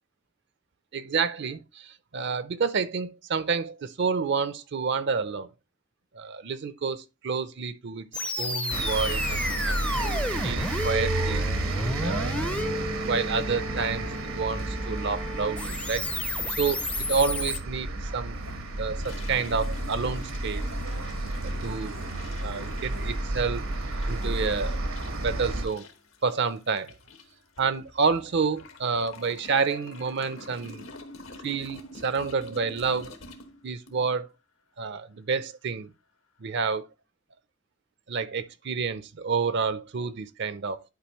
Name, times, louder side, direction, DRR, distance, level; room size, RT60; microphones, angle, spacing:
voice 1, 0.9-5.5 6.1-8.1 8.4-11.5 12.0-12.5 13.0-16.0 16.6-16.8 17.1-18.4 18.8-20.6 21.4-22.0 22.4-23.6 24.1-24.8 25.2-25.9 26.2-26.9 27.6-30.9 31.4-33.1 33.6-34.3 34.8-35.9 36.4-36.9 38.1-40.8, right 5 dB, 60° right, 0.5 m, -29 dB
sound 1, 8.1-17.6, left 2 dB, 5° left, 0.4 m, -32 dB
sound 2, 8.7-25.7, right 2 dB, 85° right, 1.2 m, -31 dB
sound 3, 18.3-34.2, left 2 dB, 80° left, 1.2 m, -46 dB
10.5 x 4.8 x 3.0 m
head